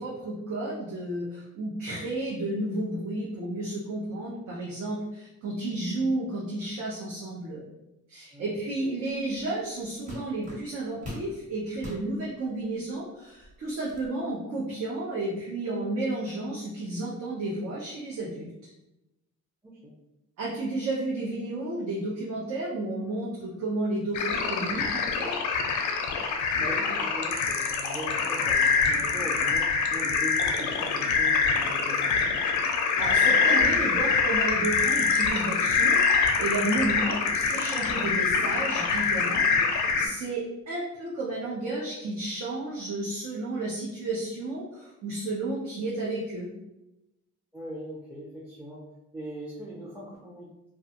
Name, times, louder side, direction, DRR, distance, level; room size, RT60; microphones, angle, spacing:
voice 1, 0.0-7.6 8.1-18.7 20.4-25.3 33.0-46.5, right 2 dB, 60° right, -6 dB, 0.7 m, -32 dB
sound 1, 9.4-9.5 10.1-11.3 11.7-12.1 12.8-12.9 13.3-14.1, left 1 dB, 25° right, 1.1 m, -41 dB
voice 2, 19.6-19.9 26.6-32.3 47.5-48.8 49.1-50.7, right 1 dB, 5° right, -5 dB, 0.5 m, -40 dB
sound 2, 24.1-40.1, left 5 dB, 70° left, 0.5 m, -25 dB
2.4 x 2.2 x 2.8 m, 0.94 s
cardioid pair, 90°, 30 cm